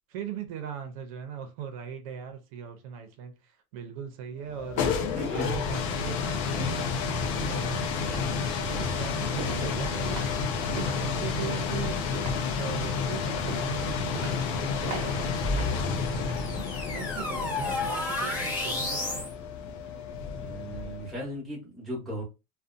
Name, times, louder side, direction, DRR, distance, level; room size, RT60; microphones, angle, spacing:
voice 1, 0.1-4.9 5.3-6.9 7.5-12.1 12.5-19.3, right 8 dB, 70° right, 0.5 m, -40 dB
sound 1, 4.5-21.2, left 5 dB, 55° left, 0.5 m, -31 dB
voice 2, 5.2-5.5 20.3-22.2, equal, ahead, 1.0 m, -36 dB
sound 2, 5.2-5.3 5.9-17.2 17.5-17.8 18.2-18.3, right 3 dB, 40° right, 0.8 m, -42 dB
sound 3, 15.4-19.3, left 2 dB, 20° left, 0.7 m, -32 dB
2.5 x 2.1 x 2.5 m
cardioid pair, 175°, 19 cm